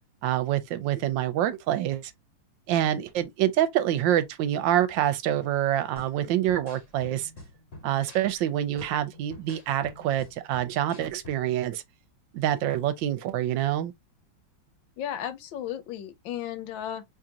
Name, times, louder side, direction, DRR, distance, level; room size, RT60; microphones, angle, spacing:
voice 1, 0.2-2.1 2.7-7.3 7.8-11.8 12.3-13.9, right 12 dB, 80° right, 1.3 m, -26 dB
sound 1, 6.0-11.6, left 2 dB, 45° left, 1.7 m, -48 dB
voice 2, 15.0-17.0, left 10 dB, 80° left, 1.4 m, -34 dB
3.7 x 3.3 x 2.7 m
omnidirectional pair, 2.1 m